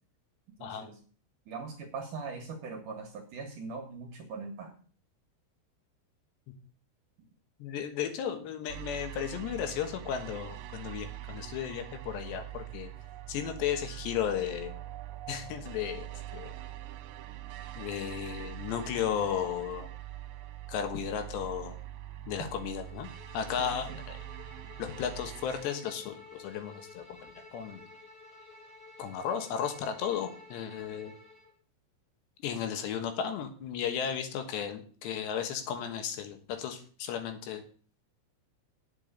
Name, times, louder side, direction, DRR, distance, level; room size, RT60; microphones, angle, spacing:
voice 1, 0.6-1.0 1.5-4.7 23.6-24.0, right 4 dB, 60° right, 4 dB, 2.4 m, -41 dB
voice 2, 7.6-12.9 13.3-14.7 15.3-16.1 16.3-16.5 17.8-19.9 20.7-21.8 22.3-24.2 24.8-27.1 27.5-27.8 29.0-31.1 32.4-37.6, left 8 dB, 75° left, 7 dB, 3.5 m, -34 dB
sound 1, 8.7-25.6, right 13 dB, 85° right, 1.9 m, -43 dB
Bowed string instrument, 22.4-31.5, left 3 dB, 40° left, 3.3 m, -52 dB
9.0 x 7.1 x 8.3 m, 0.43 s
omnidirectional pair, 5.1 m